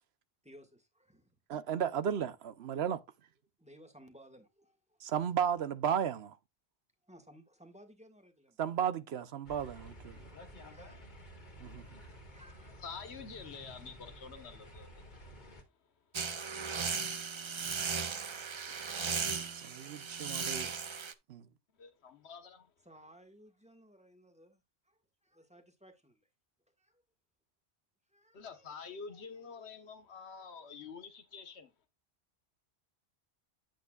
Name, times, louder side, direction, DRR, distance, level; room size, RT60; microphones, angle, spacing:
voice 1, 0.4-1.3 3.6-5.0 7.1-8.6 10.2-11.1 12.3-13.1 22.8-26.3 26.8-27.0 28.1-28.7 29.1-29.2, equal, 5° right, 1.6 m, -59 dB
voice 2, 1.5-3.0 5.0-6.4 8.6-10.2 11.6-11.9 19.5-20.7 21.3-21.5, right 8 dB, 75° right, 1.0 m, -34 dB
sound 1, 9.4-15.6, equal, 45° left, 1.8 m, -52 dB
voice 3, 12.8-15.0 21.8-22.7 28.3-31.7, left 5 dB, 85° left, 1.4 m, -47 dB
sound 2, 16.1-21.1, right 5 dB, 35° right, 0.5 m, -37 dB
8.8 x 8.2 x 2.3 m
omnidirectional pair, 1.1 m